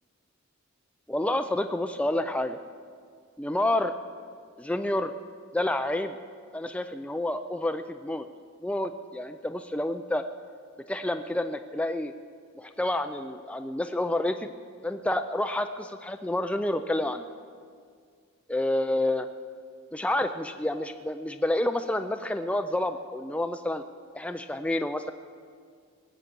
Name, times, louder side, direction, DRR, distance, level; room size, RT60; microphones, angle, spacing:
voice 1, 1.1-2.6 3.4-3.9 4.6-5.1 5.5-6.2 6.5-8.3 8.6-10.2 10.9-12.1 12.6-14.5 14.8-17.2 18.5-19.3 19.9-23.8 24.1-25.1, left 1 dB, 5° left, 7 dB, 0.3 m, -29 dB
19.5 x 8.1 x 7.5 m, 2.1 s
head